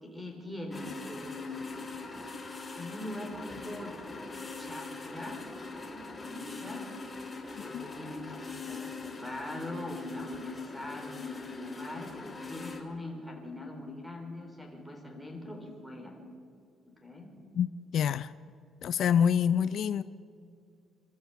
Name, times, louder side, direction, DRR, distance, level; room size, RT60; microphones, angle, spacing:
voice 1, 0.0-1.9 2.7-3.9 4.3-5.4 5.9-6.9 7.6-16.1 17.0-17.3, left 1 dB, 5° right, 3 dB, 3.9 m, -42 dB
sound 1, 0.7-12.8, left 3 dB, 15° left, 2.7 m, -42 dB
voice 2, 17.9-18.3 18.8-20.0, left 8 dB, 60° left, 14 dB, 0.5 m, -26 dB
28.5 x 12.5 x 8.2 m, 2.3 s
cardioid pair, 150°, 0 cm